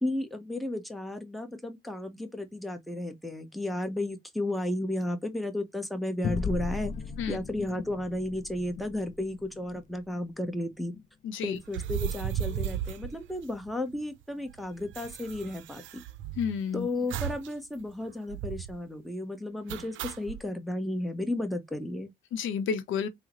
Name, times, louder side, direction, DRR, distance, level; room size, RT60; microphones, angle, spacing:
voice 1, 0.0-6.9 7.3-10.9 11.4-16.0 16.7-22.1, left 1 dB, ahead, 0.8 m, -33 dB
sound 1, 6.2-11.1, left 5 dB, 40° left, 0.4 m, -37 dB
voice 2, 11.2-11.6 16.4-16.9 22.3-23.1, left 7 dB, 80° left, 0.6 m, -30 dB
sound 2, 11.7-13.9 14.2-14.3 14.5-16.6 17.1-17.5 17.8-17.9 18.3-18.8 19.7-20.4, right 10 dB, 75° right, 0.5 m, -35 dB
3.6 x 2.0 x 2.9 m
cardioid pair, 90°, 20 cm